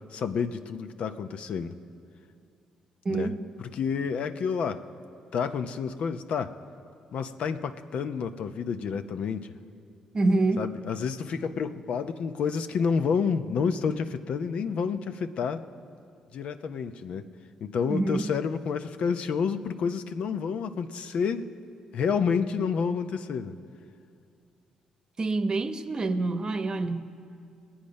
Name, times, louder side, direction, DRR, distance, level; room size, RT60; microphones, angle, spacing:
voice 1, 0.1-1.8 3.1-3.3 3.6-4.8 5.3-6.5 7.1-9.5 10.6-15.6 16.3-17.2 17.6-21.5 21.9-23.5, left 6 dB, 65° left, 9 dB, 0.7 m, -29 dB
voice 2, 3.0-3.4 10.1-10.7 17.9-18.3 25.2-27.1, right 2 dB, 40° right, 9 dB, 0.9 m, -26 dB
21.0 x 8.8 x 5.3 m, 2.4 s
supercardioid pair, 60°, 2 cm